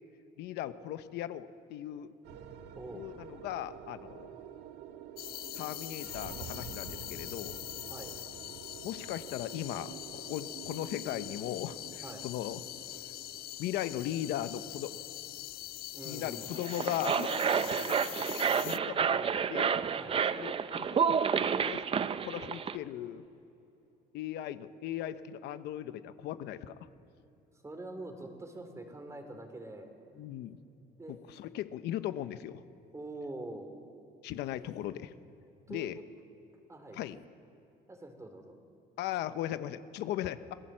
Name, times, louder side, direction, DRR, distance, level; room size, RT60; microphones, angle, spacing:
voice 1, 0.4-2.1 2.9-4.3 5.5-7.6 8.8-12.6 13.6-15.0 16.0-19.8 20.3-21.2 21.5-21.8 22.2-23.2 24.1-26.9 30.2-30.6 31.1-32.6 34.2-35.1 35.7-36.0 36.9-37.2 39.0-40.5, left 12 dB, 85° left, 11 dB, 0.9 m, -38 dB
sound 1, 2.2-20.6, right 8 dB, 90° right, 1.5 m, -50 dB
sound 2, 5.2-18.8, left 14 dB, 65° left, 0.5 m, -43 dB
voice 2, 15.9-16.5 19.9-20.2 27.6-29.9 31.0-31.2 32.9-33.7 35.7-36.0 36.7-37.0 37.9-38.6, right 2 dB, 15° right, 6 dB, 3.5 m, -44 dB
sound 3, 16.5-22.8, right 7 dB, 35° right, 0.7 m, -30 dB
27.0 x 18.5 x 7.6 m, 2.8 s
cardioid pair, 110°, 17 cm